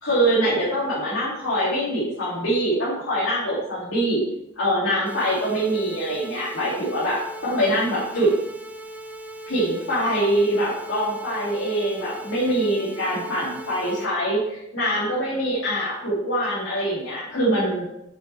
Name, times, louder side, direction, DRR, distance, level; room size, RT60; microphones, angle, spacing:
voice 1, 0.0-4.2 4.6-7.2 7.4-8.3 9.5-17.9, right 1 dB, 80° left, -10 dB, 2.7 m, -24 dB
sound 1, 5.1-14.1, right 1 dB, 10° right, 0.6 m, -39 dB
7.7 x 7.3 x 3.3 m, 0.82 s
head